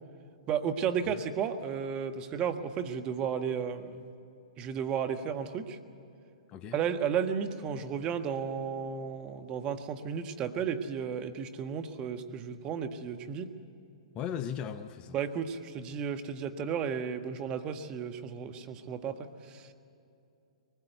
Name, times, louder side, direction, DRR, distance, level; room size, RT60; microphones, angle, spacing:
voice 1, 0.5-4.0 4.6-5.8 6.7-13.5 15.1-19.7, right 7 dB, 30° right, 8 dB, 1.3 m, -33 dB
voice 2, 14.1-15.2, left 8 dB, 30° left, 10 dB, 0.8 m, -37 dB
22.5 x 20.0 x 8.1 m, 2.7 s
hypercardioid pair, 120°, 3 cm